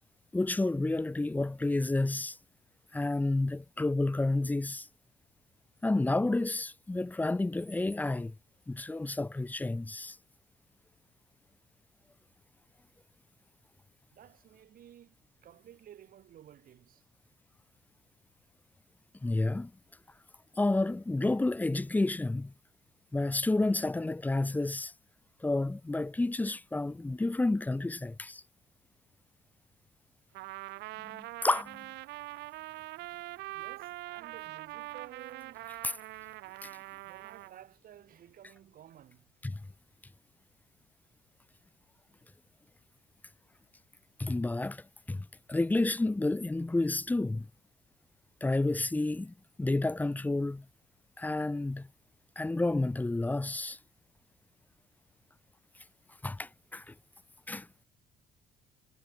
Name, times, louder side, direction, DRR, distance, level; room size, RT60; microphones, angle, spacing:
voice 1, 0.3-2.4 2.9-4.9 5.8-8.3 8.7-10.2 19.2-19.7 20.6-22.5 23.1-24.9 25.4-28.4 31.0-31.9 35.8-35.9 36.6-36.7 39.4-39.6 44.2-47.5 48.4-50.6 51.2-51.9 52.4-53.8 56.2-56.9 57.5-57.7, left 2 dB, 10° left, 0.7 m, -30 dB
voice 2, 14.1-17.1 33.0-33.1 33.5-36.1 37.1-39.6, right 11 dB, 60° right, 4.4 m, -54 dB
Trumpet, 30.3-37.6, right 19 dB, 85° right, 1.3 m, -43 dB
cardioid pair, 110°, 17 cm